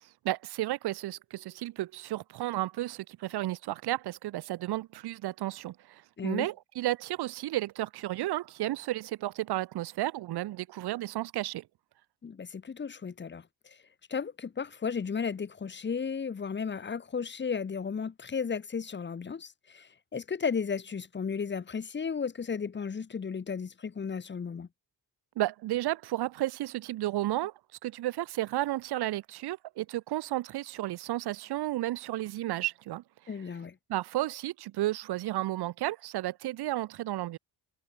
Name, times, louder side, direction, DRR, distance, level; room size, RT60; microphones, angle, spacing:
voice 1, 0.0-11.6 25.4-27.5 27.8-33.0 33.9-37.4, right 15 dB, 80° right, 1.3 m, -33 dB
voice 2, 12.2-13.8 14.1-24.7 33.3-33.8, left 6 dB, 30° left, 1.6 m, -34 dB
cardioid pair, 130°, 38 cm